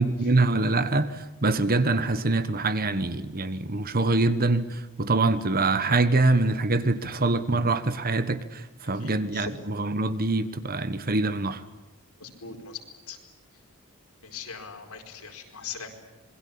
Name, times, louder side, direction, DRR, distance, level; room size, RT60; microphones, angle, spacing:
voice 1, 0.0-11.6, right 2 dB, 40° right, 1.3 m, -24 dB
voice 2, 8.9-9.6 12.2-12.8 13.1-13.2 14.2-15.9, left 5 dB, 80° left, 4.8 m, -40 dB
27.0 x 22.0 x 8.7 m
head